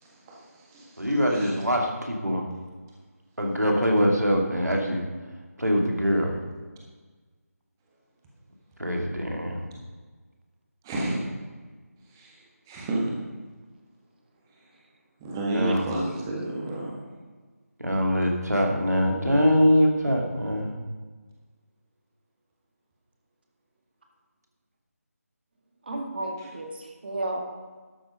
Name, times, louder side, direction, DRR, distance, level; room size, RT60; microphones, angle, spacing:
voice 1, 0.0-1.5 10.8-11.2 12.1-13.1 14.5-14.6 15.2-17.1 26.4-26.5, right 2 dB, 10° right, -3 dB, 1.5 m, -32 dB
voice 2, 1.0-2.4 3.4-5.0 5.6-6.3 8.8-9.6 15.5-15.9 17.8-20.7, equal, 90° right, 1 dB, 2.8 m, -23 dB
voice 3, 25.8-27.4, right 2 dB, 35° right, 2 dB, 1.8 m, -32 dB
12.5 x 7.7 x 5.2 m, 1.4 s
figure-of-eight pair, 165°, 9 cm